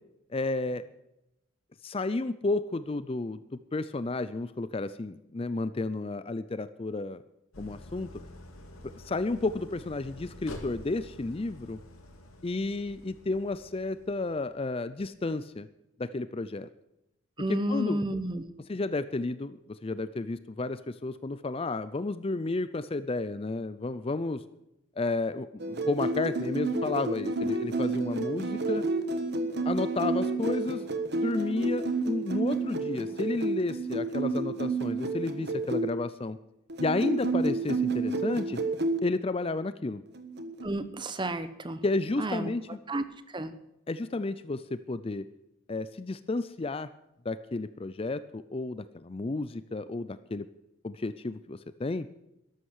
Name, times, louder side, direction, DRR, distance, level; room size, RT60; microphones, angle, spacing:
voice 1, 0.3-0.8 1.8-7.2 7.6-8.1 8.9-11.8 12.4-15.7 16.0-16.7 17.5-18.0 18.7-24.4 25.0-28.8 29.7-30.8 31.1-36.4 36.8-38.6 39.0-40.0 41.8-42.8 43.9-45.3 45.7-46.9 47.3-50.5 50.8-52.1, left 2 dB, 25° left, 14 dB, 0.4 m, -32 dB
Idling, 7.5-14.6, left 1 dB, 80° left, 2.3 m, -48 dB
voice 2, 17.4-18.5 40.6-41.8 42.2-42.5 42.9-43.5, right 1 dB, 20° right, 12 dB, 0.9 m, -31 dB
sound 1, 25.6-35.9 36.7-39.0 40.1-40.7, right 3 dB, 50° right, 1.4 m, -30 dB
13.5 x 11.5 x 6.4 m, 0.87 s
head